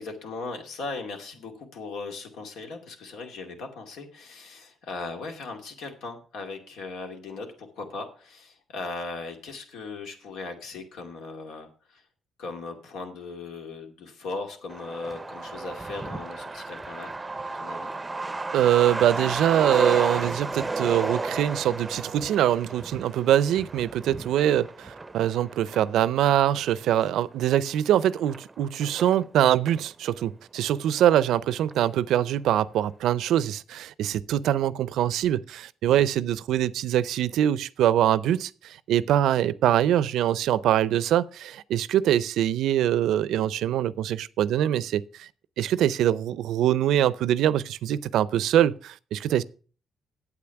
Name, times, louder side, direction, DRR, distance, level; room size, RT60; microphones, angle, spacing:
voice 1, 0.0-12.0 12.4-17.1 17.5-17.9, left 3 dB, 85° left, 2.3 m, -38 dB
Truck, 14.7-29.9 30.2-30.3 30.6-31.4 31.7-31.8 32.2-32.5, right 3 dB, 20° right, 0.6 m, -33 dB
voice 2, 18.5-45.3 45.6-49.4, right 11 dB, 80° right, 0.5 m, -23 dB
8.6 x 8.4 x 5.8 m
cardioid pair, 90°, 0 cm